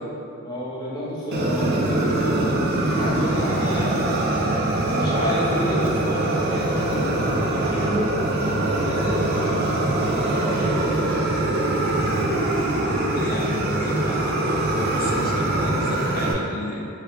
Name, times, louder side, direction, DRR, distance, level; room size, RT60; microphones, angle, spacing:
voice 1, 0.4-10.9, equal, 20° left, -9 dB, 0.8 m, -30 dB
Fire, 1.3-16.3, right 2 dB, 50° right, 0.4 m, -23 dB
voice 2, 13.1-16.9, left 1 dB, 40° left, -1 dB, 0.3 m, -32 dB
3.3 x 2.3 x 3.4 m, 2.6 s
head